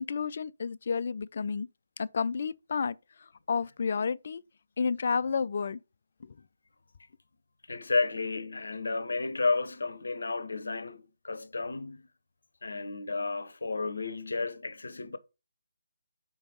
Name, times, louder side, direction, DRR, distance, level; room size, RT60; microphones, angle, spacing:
voice 1, 0.0-1.7 2.0-3.0 3.5-4.4 4.8-5.8 6.2-6.3, left 5 dB, 45° left, 0.3 m, -30 dB
voice 2, 7.7-12.1 12.6-15.2, left 3 dB, 60° left, 0.7 m, -32 dB
5.1 x 4.5 x 5.4 m
figure-of-eight pair, 145°, 0 cm